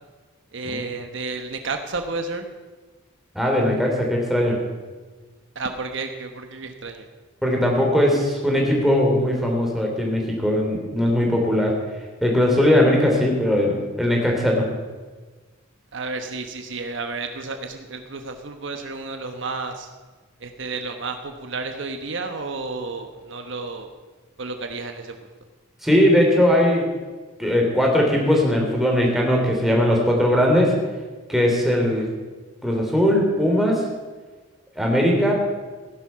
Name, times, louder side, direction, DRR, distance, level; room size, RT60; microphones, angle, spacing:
voice 1, 0.5-2.4 5.5-7.1 15.9-19.9 20.4-23.9 24.4-25.1, right 3 dB, 60° right, 6 dB, 1.1 m, -31 dB
voice 2, 3.3-4.6 7.4-11.7 12.2-14.6 25.8-26.9 27.4-30.7 31.3-32.1 32.6-33.8 34.8-35.3, left 1 dB, ahead, -1 dB, 3.0 m, -19 dB
16.5 x 11.0 x 5.7 m, 1.3 s
head